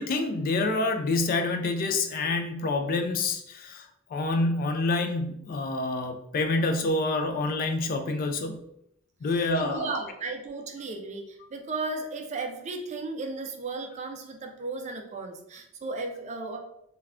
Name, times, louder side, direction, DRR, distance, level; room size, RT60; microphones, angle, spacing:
voice 1, 0.0-3.9 4.1-8.6 9.2-9.9, left 2 dB, 45° left, 5 dB, 0.3 m, -27 dB
voice 2, 9.3-16.6, right 3 dB, 35° right, 4 dB, 0.4 m, -35 dB
3.4 x 2.2 x 2.4 m, 0.77 s
head